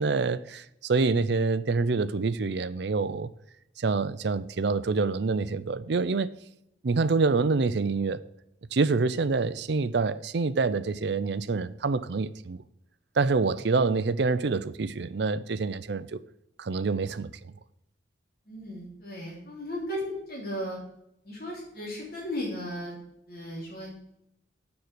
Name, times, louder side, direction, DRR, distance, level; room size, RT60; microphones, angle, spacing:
voice 1, 0.0-3.3 3.8-6.3 6.8-8.2 8.7-12.6 13.2-16.2 16.6-17.3, right 4 dB, 60° right, 0.5 m, -26 dB
voice 2, 18.4-20.8 21.2-23.0 23.3-23.9, left 1 dB, 50° left, 3.2 m, -35 dB
7.0 x 6.6 x 7.7 m
head